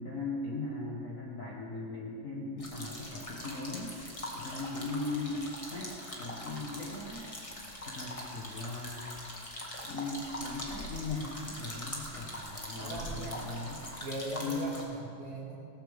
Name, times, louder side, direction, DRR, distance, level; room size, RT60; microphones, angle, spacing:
voice 1, 0.0-3.9 4.3-5.5 5.7-7.3 7.9-9.1 9.8-13.8 14.4-14.7, left 3 dB, 75° left, -4 dB, 0.7 m, -38 dB
sound 1, 2.6-14.8, left 1 dB, 30° left, 0.6 m, -42 dB
voice 2, 12.7-13.4 14.0-15.6, right 1 dB, 45° right, -3 dB, 2.5 m, -39 dB
17.5 x 13.5 x 3.6 m, 2.4 s
omnidirectional pair, 3.9 m